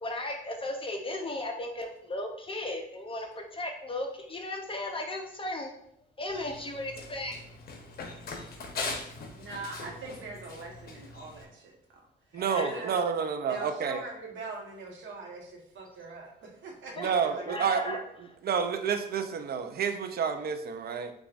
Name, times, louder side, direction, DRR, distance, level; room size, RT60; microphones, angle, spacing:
voice 1, 0.0-5.7 6.2-7.3 12.4-12.8 17.0-17.1 17.5-18.0, left 1 dB, 25° left, 2 dB, 0.6 m, -35 dB
Run, 6.3-11.4, left 3 dB, 50° left, 0.9 m, -41 dB
voice 2, 9.4-11.5 12.3-13.0 13.5-17.5, right 3 dB, 70° right, 0 dB, 1.1 m, -42 dB
voice 3, 12.3-14.0 17.0-18.0 18.4-21.1, right 6 dB, 50° right, 8 dB, 0.5 m, -29 dB
6.9 x 2.4 x 2.4 m, 0.73 s
cardioid pair, 90°, 20 cm